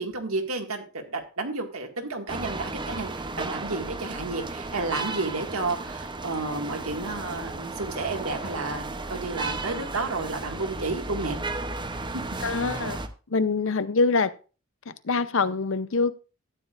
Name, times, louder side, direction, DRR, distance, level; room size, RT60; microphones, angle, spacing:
voice 1, 0.0-11.4 12.7-12.8, right 3 dB, 75° right, 2.0 m, -31 dB
sound 1, 2.3-13.1, right 3 dB, 20° right, 0.7 m, -34 dB
voice 2, 12.4-13.0 13.3-14.3 15.0-16.1, left 4 dB, 60° left, 0.7 m, -24 dB
13.0 x 9.7 x 2.5 m
head